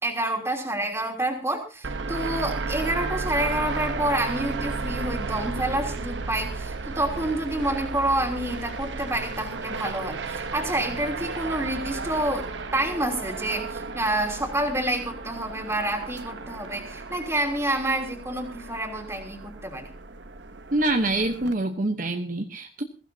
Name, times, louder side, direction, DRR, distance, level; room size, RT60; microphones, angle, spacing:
voice 1, 0.0-12.5 12.7-19.9, right 1 dB, 15° right, 3 dB, 3.1 m, -28 dB
sound 1, 1.8-21.5, right 3 dB, 75° right, 1.0 m, -34 dB
voice 2, 20.7-22.8, right 2 dB, 45° right, 4 dB, 1.0 m, -25 dB
21.5 x 15.5 x 2.8 m, 0.32 s
head